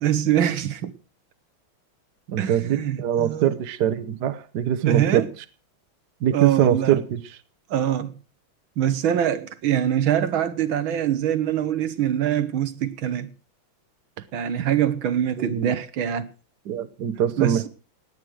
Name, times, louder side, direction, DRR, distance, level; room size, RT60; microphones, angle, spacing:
voice 1, 0.0-0.9 2.4-3.5 4.8-5.3 6.3-7.0 7.7-8.1 8.8-13.3 14.3-16.3 17.4-17.7, right 10 dB, 80° right, 1.8 m, -24 dB
voice 2, 2.3-5.3 6.2-7.4 15.4-15.7 16.7-17.7, right 9 dB, 60° right, 1.5 m, -23 dB
18.0 x 9.4 x 6.2 m
omnidirectional pair, 2.2 m